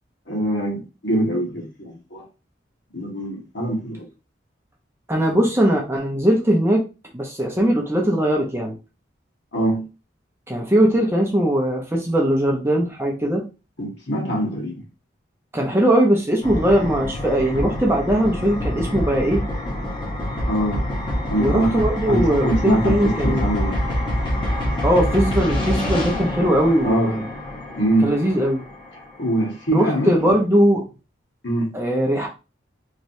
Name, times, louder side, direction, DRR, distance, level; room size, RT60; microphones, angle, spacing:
voice 1, 0.3-2.2 2.9-4.1 9.5-9.9 13.8-14.9 20.5-20.8 21.3-23.8 26.8-27.2 27.8-28.2 29.2-30.4 31.4-31.8, right 1 dB, 65° left, 1.5 m, -23 dB
voice 2, 5.1-6.8 7.1-8.8 10.5-13.4 15.5-19.4 21.4-23.5 24.8-27.3 28.0-28.6 29.7-30.9 31.7-32.3, right 1 dB, 15° right, 0.6 m, -20 dB
sound 1, 16.4-29.2, left 1 dB, 25° left, 1.0 m, -26 dB
3.1 x 2.9 x 2.7 m
head